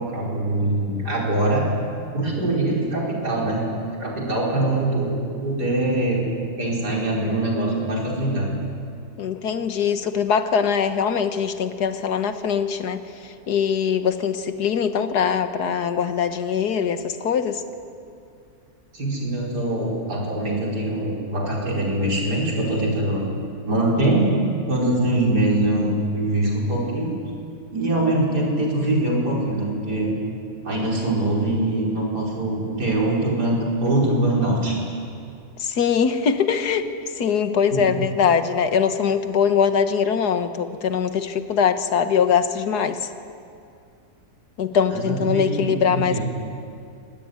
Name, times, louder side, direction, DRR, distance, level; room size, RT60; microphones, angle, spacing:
voice 1, 0.0-1.7 2.1-3.7 4.0-6.3 6.6-8.5 18.9-23.2 23.6-24.3 24.7-27.1 27.7-30.1 30.6-34.9 37.7-38.0 44.9-46.2, right 1 dB, 80° right, -3 dB, 5.5 m, -23 dB
voice 2, 9.2-13.0 13.5-17.6 35.6-36.9 37.2-43.0 44.6-46.2, left 7 dB, 80° left, 9 dB, 1.8 m, -22 dB
24.5 x 19.0 x 9.6 m, 2.4 s
omnidirectional pair, 1.7 m